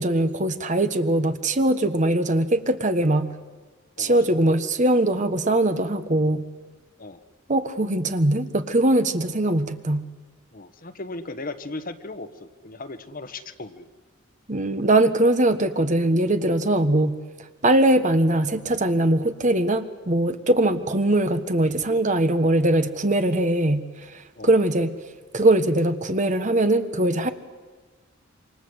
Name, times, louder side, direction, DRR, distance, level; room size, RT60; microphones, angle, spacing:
voice 1, 0.0-3.3 4.0-6.4 7.5-10.1 14.5-17.2 17.6-24.9 25.3-27.3, right 1 dB, 35° right, 9 dB, 1.4 m, -21 dB
voice 2, 4.0-4.3 7.0-7.2 10.5-13.9 24.4-24.6, left 2 dB, 45° left, 9 dB, 1.4 m, -37 dB
27.5 x 26.0 x 8.1 m, 1.4 s
head